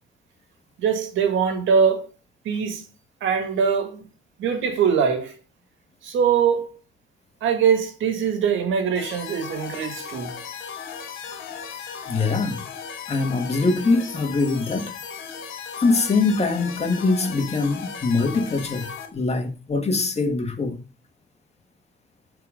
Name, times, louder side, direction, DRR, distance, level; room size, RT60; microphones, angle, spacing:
voice 1, 0.8-2.1 2.4-2.8 3.2-4.0 4.4-5.4 6.0-6.7 7.4-10.3, right 7 dB, 80° right, 2.0 m, -22 dB
sound 1, 8.9-19.1, left 7 dB, 85° left, 2.4 m, -36 dB
voice 2, 12.1-12.6 13.1-14.9 15.8-20.8, left 3 dB, 35° left, 2.1 m, -23 dB
10.5 x 4.7 x 5.2 m
cardioid pair, 90°, 20 cm